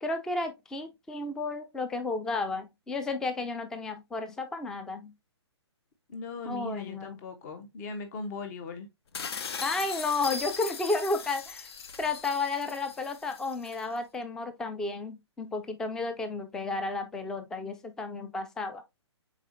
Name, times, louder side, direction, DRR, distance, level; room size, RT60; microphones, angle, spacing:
voice 1, 0.0-5.1 6.4-7.2 9.6-11.7 12.0-18.8, left 3 dB, 5° left, 0.3 m, -32 dB
voice 2, 6.1-8.9, left 3 dB, 35° left, 0.9 m, -38 dB
sound 1, 9.1-13.8, left 5 dB, 60° left, 0.6 m, -39 dB
4.7 x 4.1 x 2.6 m
figure-of-eight pair, 125°, 15 cm